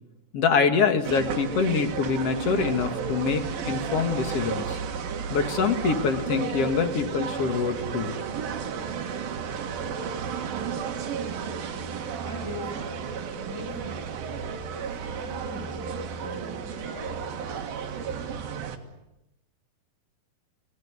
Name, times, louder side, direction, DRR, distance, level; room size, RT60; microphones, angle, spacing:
voice 1, 0.3-4.8 5.3-8.1, left 5 dB, 45° left, 7 dB, 2.6 m, -25 dB
sound 1, 1.0-18.8, right 6 dB, 70° right, 3.6 m, -33 dB
voice 2, 11.5-14.1 14.7-17.9, left 1 dB, 5° right, 3 dB, 5.5 m, -43 dB
29.0 x 17.5 x 9.7 m, 0.93 s
omnidirectional pair, 4.3 m